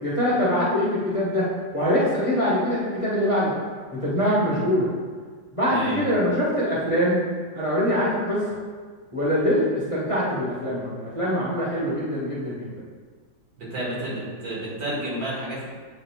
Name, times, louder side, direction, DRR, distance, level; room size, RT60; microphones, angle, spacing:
voice 1, 0.0-1.5 1.7-3.5 3.9-4.9 5.5-7.2 7.5-8.4 9.1-12.7, equal, 20° left, -8 dB, 1.2 m, -23 dB
voice 2, 5.7-6.1 13.6-15.6, right 1 dB, 80° right, -6 dB, 2.6 m, -30 dB
8.1 x 3.5 x 3.6 m, 1.6 s
omnidirectional pair, 2.0 m